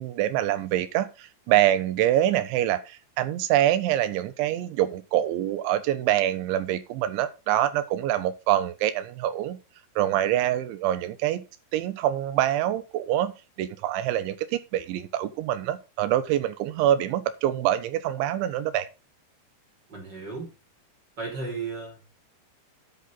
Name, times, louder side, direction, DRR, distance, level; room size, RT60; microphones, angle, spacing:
voice 1, 0.0-9.6 10.0-11.4 11.7-13.3 13.6-18.9, right 12 dB, 85° right, 12 dB, 3.5 m, -25 dB
voice 2, 19.9-20.5 21.2-22.1, right 4 dB, 20° right, 0 dB, 5.4 m, -34 dB
10.5 x 8.6 x 3.9 m, 0.28 s
omnidirectional pair, 5.3 m